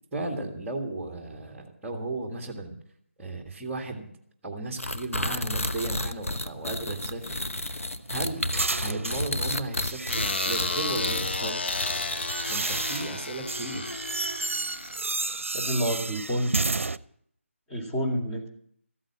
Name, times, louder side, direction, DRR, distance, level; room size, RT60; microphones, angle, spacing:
voice 1, 0.1-2.8 3.2-4.1 4.4-7.4 8.1-8.5 8.8-11.7 12.5-13.9, right 2 dB, 10° right, 1 dB, 1.9 m, -35 dB
sound 1, 4.8-13.3, left 1 dB, 85° left, 1.3 m, -32 dB
sound 2, 6.9-9.3 9.9-11.1 11.8-17.0, right 3 dB, 70° right, 0.7 m, -32 dB
sound 3, 10.1-15.4, left 4 dB, 50° left, 0.8 m, -33 dB
voice 2, 15.5-16.6 17.7-18.5, equal, 10° left, -3 dB, 2.3 m, -28 dB
14.5 x 8.7 x 8.6 m, 0.63 s
figure-of-eight pair, 160°, 7 cm